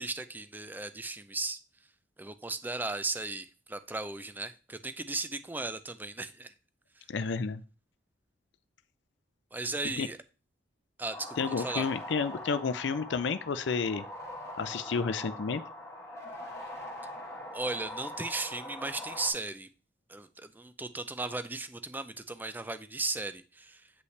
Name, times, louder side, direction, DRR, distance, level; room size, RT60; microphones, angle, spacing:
voice 1, 0.0-1.6 2.2-6.5 9.5-10.2 11.0-11.9 17.5-19.7 20.1-23.8, right 3 dB, 10° right, 12 dB, 0.4 m, -36 dB
voice 2, 7.1-7.6 10.0-10.1 11.4-14.0 14.6-15.6, left 5 dB, 65° left, 12 dB, 0.4 m, -31 dB
sound 1, 11.1-19.3, left 1 dB, 15° left, 2.1 m, -42 dB
8.0 x 5.5 x 3.2 m, 0.35 s
head